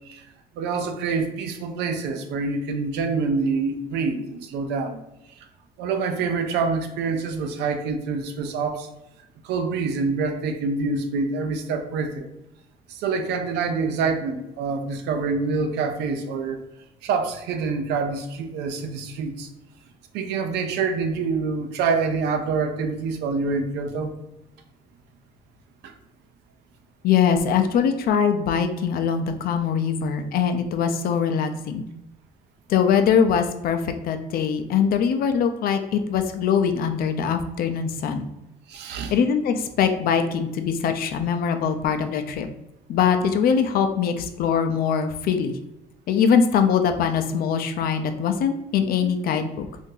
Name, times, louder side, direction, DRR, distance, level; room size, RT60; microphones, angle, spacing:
voice 1, 0.6-5.0 5.8-8.9 9.4-12.3 12.9-16.6 17.0-19.5 20.1-24.1 25.8-25.9 38.7-39.1 49.0-49.1, right 4 dB, 85° right, 7 dB, 0.5 m, -26 dB
voice 2, 27.0-31.8 32.7-38.3 39.1-42.5 42.9-45.6 46.1-49.7, left 7 dB, 60° left, 8 dB, 0.5 m, -22 dB
2.7 x 2.6 x 3.8 m, 0.90 s
cardioid pair, 110°, 17 cm